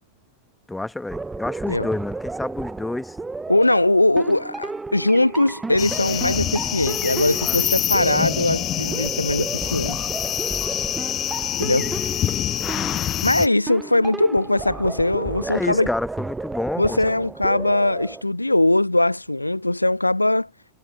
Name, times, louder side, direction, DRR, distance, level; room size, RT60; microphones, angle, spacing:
voice 1, 0.7-3.2 7.3-7.6 12.6-13.0 15.5-17.0, left 2 dB, 5° left, 1.7 m, -29 dB
sound 1, 1.1-18.2, right 3 dB, 10° right, 0.8 m, -33 dB
voice 2, 3.5-10.0 11.6-11.9 13.2-15.9 16.8-20.5, left 1 dB, 85° left, 0.5 m, -20 dB
sound 2, 5.8-13.5, left 12 dB, 30° left, 0.4 m, -26 dB
figure-of-eight pair, 90°, 0 cm